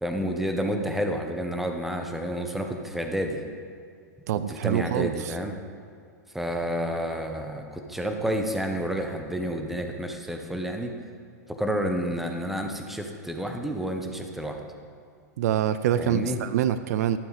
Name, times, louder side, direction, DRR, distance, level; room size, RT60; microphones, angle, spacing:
voice 1, 0.0-3.4 4.5-5.5 6.3-10.9 11.5-14.6 16.0-16.4, equal, 5° right, 4 dB, 0.9 m, -30 dB
voice 2, 4.3-5.4 15.4-17.2, right 10 dB, 65° right, 13 dB, 0.4 m, -25 dB
12.0 x 7.2 x 4.8 m, 2.3 s
hypercardioid pair, 125°, 9 cm